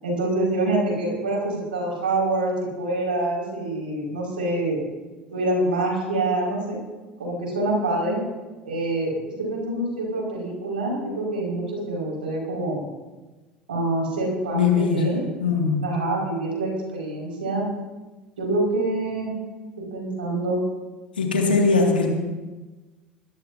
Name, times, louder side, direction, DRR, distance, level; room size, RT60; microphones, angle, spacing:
voice 1, 0.0-4.8 5.3-6.8 7.2-8.2 8.6-12.8 13.7-15.2 15.8-17.7 18.4-19.4 19.8-20.6, right 2 dB, 85° right, -2 dB, 5.4 m, -26 dB
voice 2, 14.5-15.1 15.4-15.8 21.2-22.1, left 4 dB, 90° left, 0 dB, 2.2 m, -20 dB
22.0 x 13.5 x 2.8 m, 1.2 s
hypercardioid pair, 70°, 5 cm